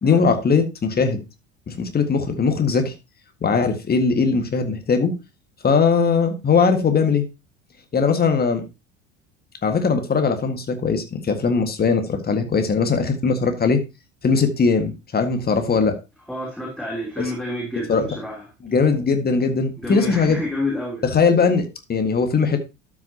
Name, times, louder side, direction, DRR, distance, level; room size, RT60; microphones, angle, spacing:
voice 1, 0.0-1.2 1.7-2.9 3.4-5.1 5.6-7.3 7.9-8.6 9.6-13.8 14.2-15.9 17.9-18.1 18.6-20.4 21.0-22.6, left 5 dB, 25° left, 7 dB, 1.7 m, -20 dB
voice 2, 16.3-18.4 19.8-21.0, left 1 dB, ahead, -3 dB, 3.3 m, -29 dB
12.5 x 6.2 x 2.9 m, 0.26 s
figure-of-eight pair, 70°, 38 cm